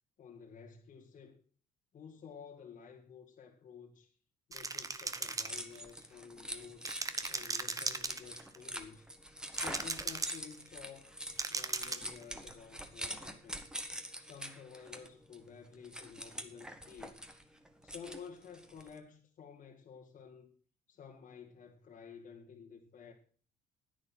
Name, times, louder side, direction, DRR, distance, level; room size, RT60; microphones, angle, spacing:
voice 1, 0.2-1.4 1.9-4.1 4.5-6.9 7.3-9.1 9.6-11.1 11.5-13.7 14.2-17.2 17.8-20.5 20.9-23.1, left 6 dB, 50° left, 1.9 m, -52 dB
sound 1, 4.5-6.0 6.9-8.6 9.6-10.6 11.4-12.2, right 3 dB, 20° right, 1.0 m, -37 dB
sound 2, 5.1-19.0, equal, 5° right, 1.5 m, -45 dB
10.5 x 9.7 x 5.6 m
cardioid pair, 110°, 17 cm